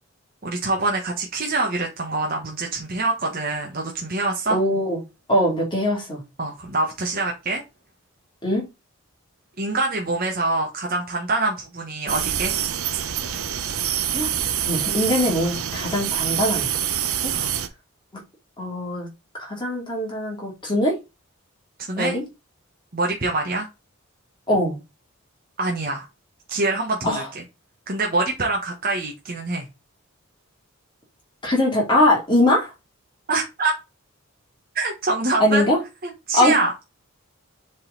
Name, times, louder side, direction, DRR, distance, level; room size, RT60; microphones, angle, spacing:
voice 1, 0.4-4.6 6.4-7.6 9.6-12.5 17.3-17.5 21.9-22.2 22.9-23.7 25.6-26.1 26.5-27.4 27.9-29.7 33.3-33.7 34.7-35.6 36.0-36.7, right 3 dB, 40° right, 1.2 m, -25 dB
voice 2, 4.5-5.0 5.3-6.2 8.4-8.6 14.1-14.3 14.6-16.7 17.2-17.3 18.6-19.1 19.3-21.0 22.0-22.2 24.5-24.8 27.0-27.3 31.4-32.7 35.4-35.8 36.3-36.6, left 1 dB, 20° left, 2.8 m, -21 dB
sound 1, 12.1-17.7, right 10 dB, 80° right, 0.9 m, -26 dB
7.1 x 4.0 x 3.9 m
head